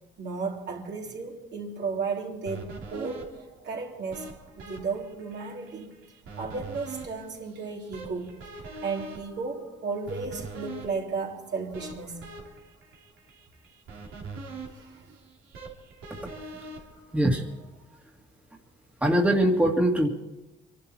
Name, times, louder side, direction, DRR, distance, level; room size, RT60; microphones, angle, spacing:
voice 1, 0.2-3.3 3.6-4.3 4.5-5.9 6.4-8.4 8.8-12.2 14.7-15.1, right 4 dB, 60° right, 3.3 m, -34 dB
sound 1, 2.5-17.7, right 3 dB, 90° right, 3.1 m, -43 dB
voice 2, 17.1-17.5 19.0-20.1, right 1 dB, 5° right, 2.1 m, -22 dB
24.0 x 12.0 x 4.4 m
cardioid pair, 90°, 20 cm